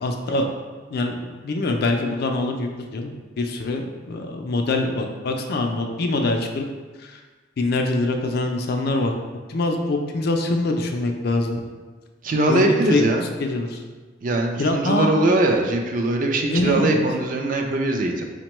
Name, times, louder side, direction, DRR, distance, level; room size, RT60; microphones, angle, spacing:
voice 1, 0.0-0.5 0.9-6.7 7.0-7.2 7.6-9.1 9.5-11.6 12.5-13.0 13.4-13.8 14.6-15.1 16.5-17.0, left 2 dB, 55° left, 3 dB, 0.4 m, -24 dB
voice 2, 12.2-13.3 14.2-18.2, right 2 dB, 45° right, 3 dB, 0.4 m, -21 dB
5.1 x 2.2 x 3.0 m, 1.3 s
head